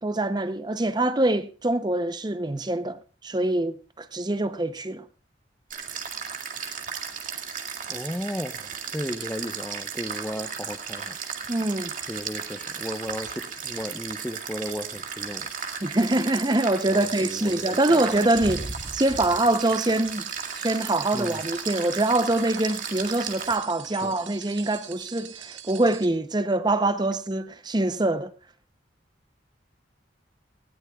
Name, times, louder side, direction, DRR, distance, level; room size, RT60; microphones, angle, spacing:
voice 1, 0.0-5.0 11.5-11.9 15.8-20.3 20.5-28.3, right 2 dB, 20° right, 0.6 m, -24 dB
sound 1, 5.7-23.6, right 6 dB, 45° right, 2.1 m, -35 dB
voice 2, 7.9-11.2 12.1-15.5 16.9-17.6 17.9-18.6 21.1-21.4 23.9-24.2, equal, 10° left, 0.8 m, -35 dB
sound 2, 17.0-26.1, right 10 dB, 80° right, 1.9 m, -44 dB
19.5 x 17.0 x 2.3 m
head